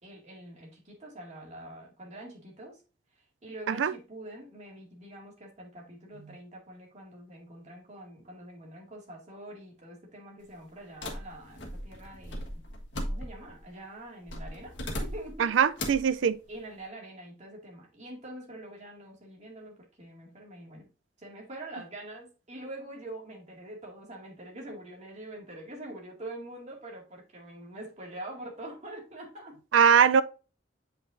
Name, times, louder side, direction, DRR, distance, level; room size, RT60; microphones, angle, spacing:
voice 1, 0.0-2.8 3.4-12.6 12.9-14.7 15.0-15.5 16.5-20.9 21.2-29.6, right 1 dB, 40° right, 2.1 m, -45 dB
sound 1, 11.0-13.6 14.3-15.4 15.8-16.1, left 1 dB, 70° left, 1.4 m, -37 dB
voice 2, 15.4-16.4 29.7-30.2, right 7 dB, 85° right, 0.4 m, -21 dB
7.7 x 5.3 x 2.6 m
head